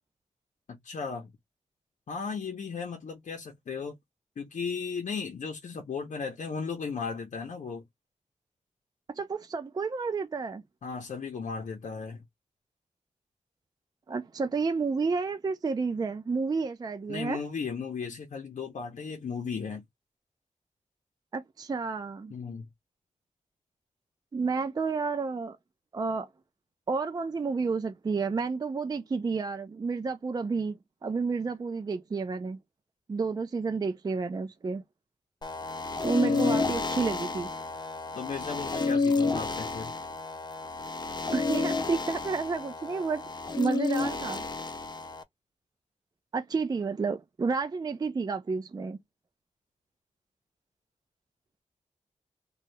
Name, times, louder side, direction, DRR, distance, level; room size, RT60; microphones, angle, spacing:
voice 1, 0.7-1.3 2.1-4.0 4.4-7.8 10.8-12.2 17.1-19.8 22.3-22.7 36.2-36.6 38.1-39.9, left 5 dB, 75° left, 0.7 m, -36 dB
voice 2, 9.1-10.6 14.1-17.4 21.3-22.3 24.3-25.6 25.9-26.3 26.9-32.6 33.1-34.8 36.0-37.5 41.3-43.3 43.6-44.4 46.3-49.0, right 4 dB, 30° right, 0.4 m, -30 dB
sound 1, 35.4-45.2, left 4 dB, 35° left, 0.5 m, -31 dB
2.7 x 2.3 x 3.2 m
wide cardioid pair, 110°, 13 cm